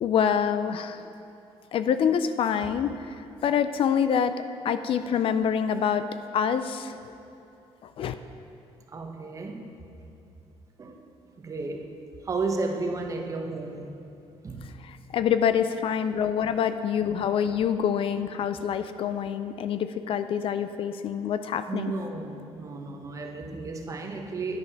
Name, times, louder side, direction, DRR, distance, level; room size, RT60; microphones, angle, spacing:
voice 1, 0.0-1.0 1.7-3.0 3.4-4.4 4.6-6.1 6.3-7.0 8.0-8.1 15.1-21.9, left 8 dB, 55° left, 11 dB, 0.5 m, -26 dB
voice 2, 8.9-9.7 10.8-11.0 11.4-11.9 12.2-13.9 14.4-14.7 21.7-24.6, right 3 dB, 30° right, 3 dB, 1.1 m, -33 dB
10.5 x 9.5 x 5.9 m, 2.7 s
cardioid pair, 140°, 11 cm